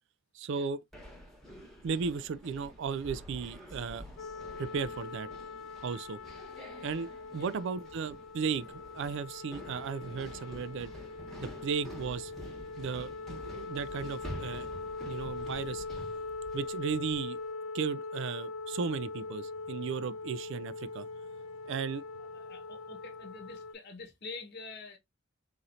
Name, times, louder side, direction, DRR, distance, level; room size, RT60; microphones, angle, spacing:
voice 1, 0.3-0.8 1.8-4.0 4.6-5.3 5.8-6.2 6.8-7.1 7.3-10.9 11.4-12.3 12.8-14.7 15.1-15.8 16.5-17.4 17.7-21.1 21.7-22.0, right 5 dB, 65° right, 0.4 m, -35 dB
sound 1, 0.9-17.4, equal, ahead, 1.1 m, -48 dB
sound 2, 4.2-23.7, left 3 dB, 75° left, 0.4 m, -42 dB
voice 2, 22.3-25.0, left 3 dB, 55° left, 1.1 m, -46 dB
4.0 x 3.0 x 2.6 m
head